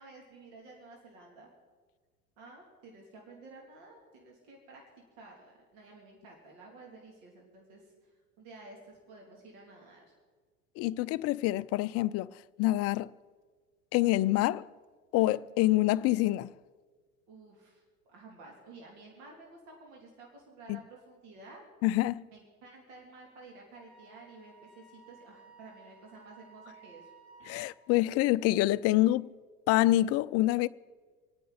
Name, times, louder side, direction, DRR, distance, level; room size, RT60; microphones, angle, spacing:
voice 1, 0.0-1.5 2.4-4.8 5.2-10.1 17.3-21.6 22.3-27.1, right 3 dB, 60° right, 3.2 m, -52 dB
voice 2, 10.8-13.1 13.9-14.7 15.1-16.5 21.8-22.2 27.5-29.3 29.7-30.7, left 16 dB, 40° left, 0.4 m, -26 dB
Wind instrument woodwind instrument, 23.7-27.7, right 5 dB, 85° right, 5.4 m, -56 dB
27.0 x 9.2 x 4.2 m
hypercardioid pair, 75°, 41 cm